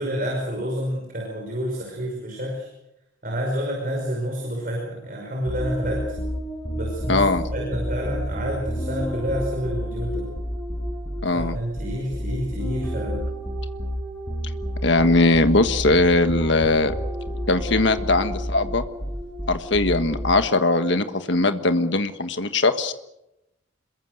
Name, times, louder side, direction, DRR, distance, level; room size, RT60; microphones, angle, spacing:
voice 1, 0.0-2.7 3.2-6.0 6.7-10.3 11.3-13.3, equal, 45° right, 0 dB, 5.6 m, -29 dB
sound 1, 5.5-20.6, equal, 5° left, 6.0 m, -30 dB
voice 2, 7.1-7.4 11.2-11.6 14.8-16.9 17.5-18.8 19.5-22.9, left 2 dB, 65° left, 9 dB, 1.5 m, -20 dB
27.0 x 22.5 x 6.7 m, 0.88 s
head